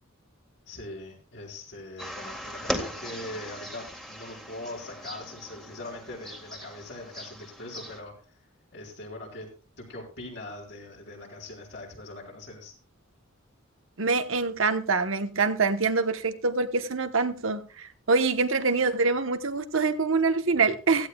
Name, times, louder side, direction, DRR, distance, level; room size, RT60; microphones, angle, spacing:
voice 1, 0.7-8.1 8.7-9.5 9.8-12.7, left 2 dB, 60° left, 5.6 m, -41 dB
sound 1, 2.0-8.0, equal, ahead, 1.8 m, -39 dB
voice 2, 14.0-21.1, right 4 dB, 75° right, 1.2 m, -25 dB
16.5 x 15.0 x 2.4 m
head